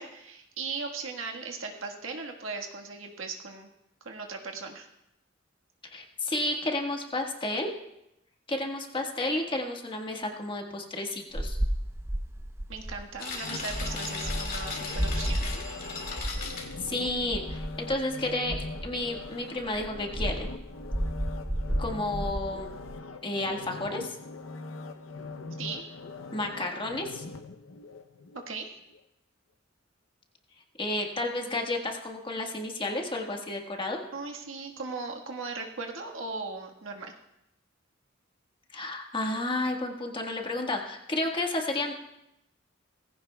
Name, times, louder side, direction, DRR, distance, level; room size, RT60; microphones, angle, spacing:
voice 1, 0.0-3.7 4.0-4.9 12.7-15.5 25.6-25.9 28.3-28.7 34.1-37.1, right 4 dB, 85° right, 2 dB, 1.5 m, -38 dB
voice 2, 5.9-7.7 8.5-11.6 16.5-18.6 18.8-20.5 21.8-22.8 23.2-24.2 26.3-27.2 30.8-34.0 38.7-41.9, left 2 dB, 25° left, 2 dB, 1.4 m, -31 dB
sound 1, 11.3-19.3 19.6-23.0, equal, 15° right, 0.7 m, -33 dB
sound 2, 13.2-17.5, left 4 dB, 50° left, 1.9 m, -37 dB
sound 3, 13.4-28.5 28.9-29.0, left 3 dB, 75° left, 0.7 m, -42 dB
18.0 x 15.5 x 2.3 m, 0.85 s
head